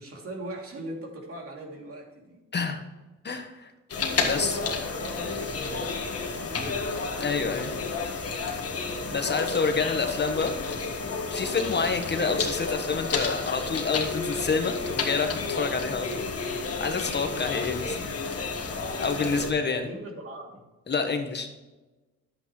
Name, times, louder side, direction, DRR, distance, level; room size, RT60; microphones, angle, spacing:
voice 1, 0.0-2.4 4.1-6.8 19.2-20.6, right 1 dB, 50° right, 0 dB, 2.8 m, -40 dB
voice 2, 3.2-3.7 4.3-4.6 7.2-7.7 9.1-10.5 11.3-16.5 16.8-18.0 19.0-19.9 20.9-21.5, left 4 dB, 35° left, 6 dB, 1.2 m, -28 dB
sound 1, 3.9-19.5, left 4 dB, 50° left, 1.8 m, -31 dB
10.5 x 8.3 x 3.1 m, 1.1 s
cardioid pair, 90°, 30 cm